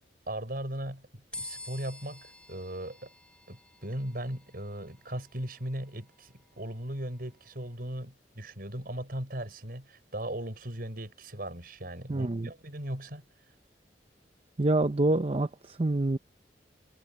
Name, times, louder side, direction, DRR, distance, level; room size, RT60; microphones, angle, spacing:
voice 1, 0.3-3.1 3.5-13.2, right 1 dB, 55° right, 6.6 m, -38 dB
sound 1, 1.3-7.8, left 2 dB, 5° left, 4.2 m, -49 dB
voice 2, 12.1-12.5 14.6-16.2, right 2 dB, 35° right, 0.7 m, -26 dB
head